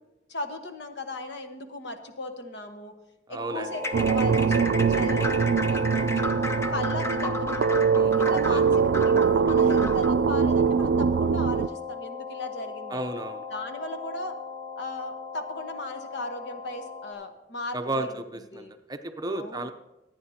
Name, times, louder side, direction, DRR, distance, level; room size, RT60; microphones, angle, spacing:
voice 1, 0.3-2.9 3.3-6.3 6.7-8.7 9.0-13.1 13.5-14.3 14.8-18.1 18.5-18.7 19.3-19.7, left 2 dB, 75° left, 6 dB, 1.3 m, -37 dB
voice 2, 3.3-3.7 8.5-8.6 12.9-13.5 17.7-18.1 18.3-19.7, right 2 dB, 20° right, 7 dB, 0.7 m, -33 dB
sound 1, 3.4-17.1, left 3 dB, 60° left, 4.4 m, -36 dB
sound 2, 3.7-10.2, left 2 dB, 15° left, 0.7 m, -34 dB
sound 3, 3.9-11.7, right 6 dB, 85° right, 0.4 m, -23 dB
24.5 x 9.5 x 2.9 m, 0.97 s
head